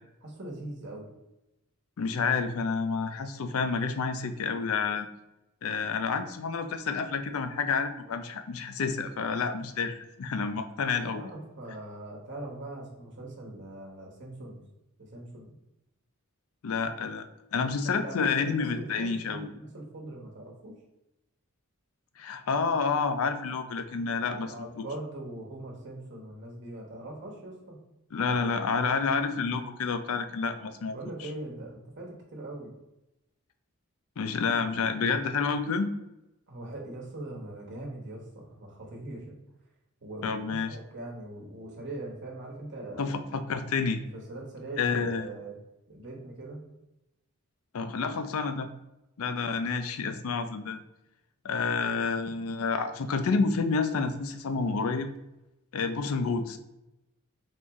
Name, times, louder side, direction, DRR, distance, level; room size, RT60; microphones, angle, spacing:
voice 1, 0.2-1.1 10.8-14.6 15.0-15.5 17.8-20.7 24.2-27.8 28.2-28.5 30.9-32.7 36.5-39.3 40.0-43.1 44.1-45.5 45.9-46.6, right 1 dB, 55° right, 0 dB, 1.1 m, -41 dB
voice 2, 2.0-5.1 5.6-11.2 16.6-19.5 22.2-24.5 28.1-30.9 31.2-31.3 34.2-35.9 40.2-40.8 43.0-44.0 44.8-45.3 47.7-48.7 49.2-50.8 51.4-55.1 55.7-56.6, left 5 dB, 75° left, 9 dB, 0.4 m, -29 dB
4.0 x 3.0 x 3.5 m, 0.92 s
head